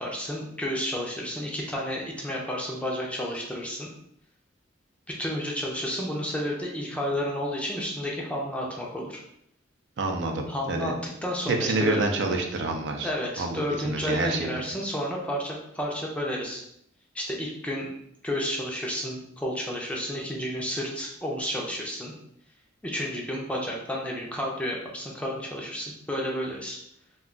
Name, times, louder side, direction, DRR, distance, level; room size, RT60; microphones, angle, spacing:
voice 1, 0.0-3.9 5.2-9.2 10.5-10.9 11.2-12.1 13.0-16.6 17.1-17.9 18.2-22.1 22.8-26.8, equal, 5° left, -2 dB, 0.5 m, -31 dB
voice 2, 10.0-10.9 11.5-13.1 13.4-14.5, right 3 dB, 65° right, 2 dB, 0.4 m, -28 dB
2.4 x 2.3 x 3.7 m, 0.72 s
head